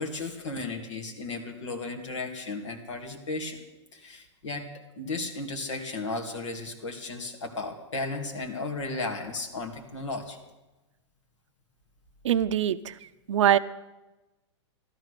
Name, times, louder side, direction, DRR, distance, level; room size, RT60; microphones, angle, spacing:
voice 1, 0.0-3.6 3.9-4.7 5.0-10.4, left 3 dB, 80° left, 3 dB, 2.6 m, -34 dB
voice 2, 12.2-12.8 13.3-13.6, right 10 dB, 80° right, 13 dB, 0.6 m, -22 dB
14.0 x 12.5 x 6.8 m, 1.1 s
hypercardioid pair, 120°, 15 cm